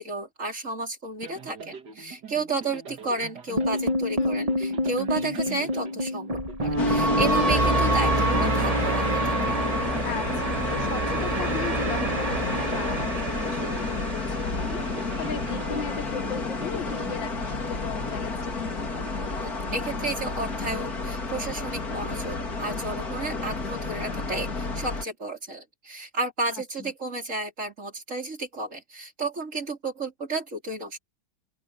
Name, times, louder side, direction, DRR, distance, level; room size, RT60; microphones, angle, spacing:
voice 1, 0.0-9.6 19.4-31.0, right 3 dB, 40° right, 4.6 m, -32 dB
sound 1, 1.2-17.8, right 5 dB, 65° right, 2.5 m, -43 dB
sound 2, 3.6-15.8, right 1 dB, 25° right, 1.2 m, -27 dB
voice 2, 4.2-4.5 10.0-19.1 26.5-26.9, left 6 dB, 90° left, 2.2 m, -37 dB
sound 3, 6.8-25.0, left 3 dB, 55° left, 4.1 m, -30 dB
open air
omnidirectional pair, 2.0 m